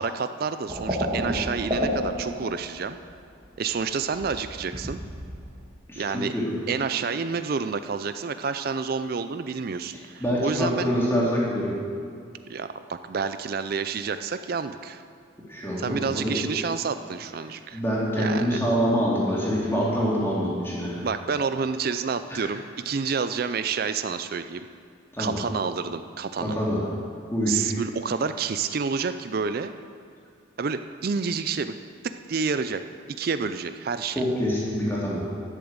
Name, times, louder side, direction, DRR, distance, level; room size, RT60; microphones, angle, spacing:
voice 1, 0.0-3.0 3.6-5.0 6.0-6.3 6.7-10.9 12.5-15.0 15.8-17.8 18.2-18.6 21.0-24.7 25.2-26.6 27.5-29.7 30.6-31.7 32.0-32.8 33.2-34.2, right 5 dB, 45° right, 10 dB, 0.4 m, -29 dB
sound 1, 0.7-3.2 3.4-5.6, equal, 25° right, 1.5 m, -30 dB
voice 2, 5.9-6.5 10.2-11.8 15.5-16.3 17.7-21.1 22.3-22.5 25.1-25.4 26.4-26.8 27.3-27.7 34.2-35.2, equal, 10° left, -6 dB, 2.7 m, -25 dB
12.0 x 6.9 x 7.9 m, 2.4 s
head